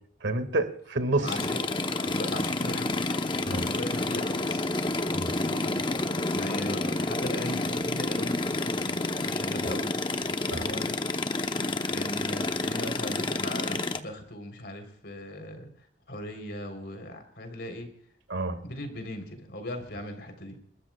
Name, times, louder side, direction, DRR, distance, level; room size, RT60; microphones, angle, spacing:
voice 1, 0.2-1.4 3.5-3.7 5.1-5.3 10.5-10.7 18.3-18.6, right 2 dB, 80° right, 9 dB, 2.0 m, -29 dB
sound 1, 1.3-14.0, left 2 dB, 25° left, 0.8 m, -29 dB
voice 2, 1.9-4.7 5.3-9.9 10.5-11.0 11.9-15.7 16.1-17.9 18.6-20.6, left 1 dB, 60° left, 5 dB, 3.6 m, -38 dB
30.0 x 13.5 x 2.3 m, 0.63 s
head